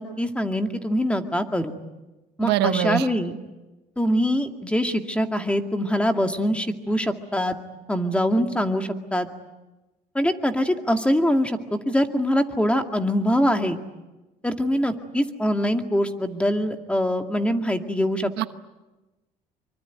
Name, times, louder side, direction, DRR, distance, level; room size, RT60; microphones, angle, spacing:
voice 1, 0.0-1.7 2.4-3.4 4.0-7.6 7.9-9.3 10.1-13.8 14.4-18.5, equal, 5° left, 6 dB, 2.2 m, -23 dB
voice 2, 2.4-3.1 18.4-18.5, right 13 dB, 85° right, 11 dB, 1.1 m, -23 dB
25.0 x 24.0 x 9.4 m, 1.1 s
cardioid pair, 110°, 17 cm